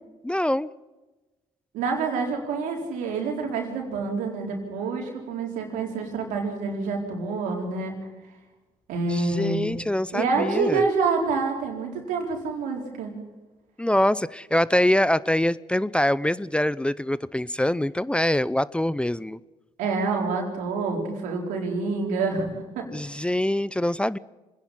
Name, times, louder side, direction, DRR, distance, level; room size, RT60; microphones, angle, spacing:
voice 1, 0.2-0.7 9.1-10.8 13.8-19.4 22.9-24.2, left 1 dB, 10° left, 18 dB, 0.6 m, -24 dB
voice 2, 1.7-7.9 8.9-9.6 10.1-13.1 19.8-22.9 23.1-23.3, right 4 dB, 90° right, 1 dB, 4.4 m, -27 dB
25.5 x 10.5 x 10.0 m, 1.1 s
cardioid pair, 70°, 13 cm